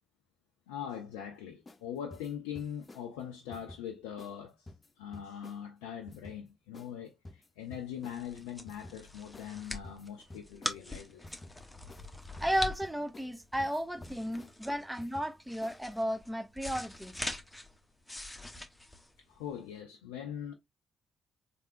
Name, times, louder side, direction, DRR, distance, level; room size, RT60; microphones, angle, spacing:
voice 1, 0.7-4.7 5.0-11.3 19.3-20.5, left 9 dB, 80° left, 0.4 m, -42 dB
sound 1, 1.7-1.8 2.1-3.1 3.5-3.8 4.2-4.4 4.7-5.6 6.1-6.4 6.7-6.9 7.2-8.2 8.7-9.0 9.3-9.5 9.8-10.8 11.2-11.6 11.9-12.1 12.4-13.3 13.6-14.5 15.0-15.3 15.6-15.9, left 2 dB, 35° left, 0.8 m, -51 dB
sound 2, 7.7-19.7, left 2 dB, 10° left, 1.0 m, -43 dB
voice 2, 12.4-17.3, equal, 10° right, 0.7 m, -34 dB
3.5 x 3.1 x 2.6 m
hypercardioid pair, 40°, 0 cm